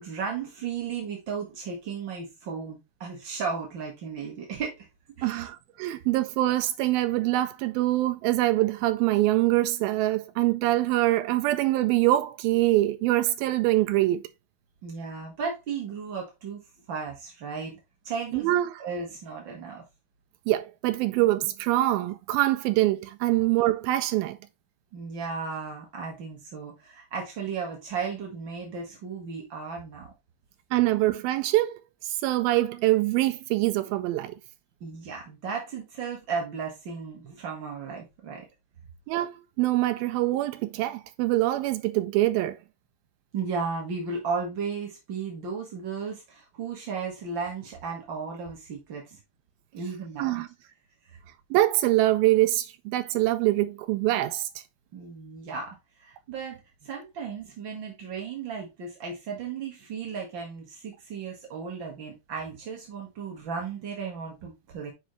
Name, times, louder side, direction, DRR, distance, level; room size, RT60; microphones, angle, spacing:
voice 1, 0.0-4.9 5.2-5.5 14.8-16.6 16.9-17.8 18.0-19.8 24.9-30.1 34.8-38.4 43.3-49.2 49.7-50.3 54.9-64.9, right 5 dB, 65° right, 1.2 m, -35 dB
voice 2, 5.2-14.3 18.3-18.8 20.5-24.4 30.7-31.8 32.0-34.4 39.1-42.6 50.2-50.5 51.5-54.5, right 16 dB, 85° right, 2.2 m, -24 dB
7.1 x 5.5 x 3.1 m
omnidirectional pair, 4.5 m